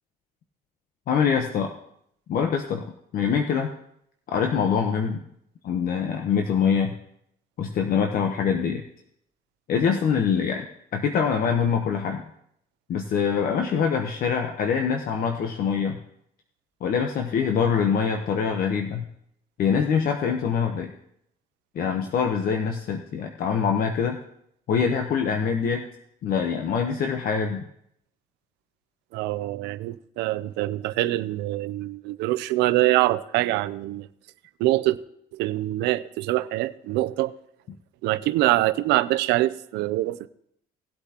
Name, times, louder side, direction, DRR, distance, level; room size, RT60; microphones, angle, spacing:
voice 1, 1.1-1.7 2.3-2.8 3.1-3.7 4.3-5.2 5.6-6.9 7.6-8.8 9.7-10.7 10.9-12.2 12.9-16.0 16.8-19.0 19.6-20.9 21.7-24.2 24.7-25.9 26.2-27.6, left 6 dB, 60° left, 1.0 m, -24 dB
voice 2, 29.1-34.1 34.6-35.0 35.3-37.3 38.0-40.3, right 16 dB, 90° right, 0.5 m, -24 dB
18.5 x 8.3 x 2.9 m
cardioid pair, 110°, 17 cm